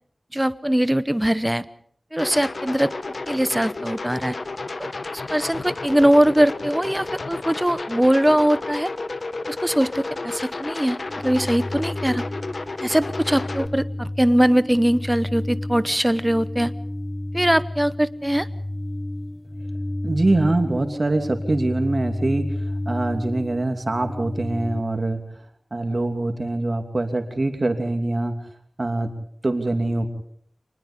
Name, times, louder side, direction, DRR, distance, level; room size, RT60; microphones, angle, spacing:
voice 1, 0.3-1.6 2.1-2.9 3.3-4.4 4.8-8.9 9.5-12.2 12.8-16.7 17.3-18.5, equal, 10° right, 15 dB, 0.8 m, -21 dB
sound 1, 2.2-13.7, left 3 dB, 55° left, 1.0 m, -32 dB
sound 2, 11.1-24.8, left 1 dB, 15° left, 1.1 m, -31 dB
voice 2, 20.0-22.4 22.9-25.2 25.7-28.3 28.8-29.1 29.4-30.1, right 2 dB, 40° right, 5 dB, 2.8 m, -23 dB
25.5 x 20.5 x 5.3 m, 0.64 s
wide cardioid pair, 90°, 0 cm